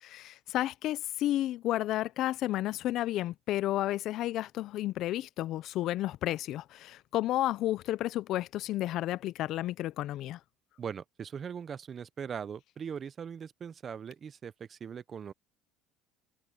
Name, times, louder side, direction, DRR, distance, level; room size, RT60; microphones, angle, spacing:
voice 1, 0.0-10.4, left 14 dB, 55° left, 0.5 m, -32 dB
voice 2, 10.8-15.3, right 7 dB, 35° right, 0.6 m, -40 dB
cardioid pair, 120°, 0 cm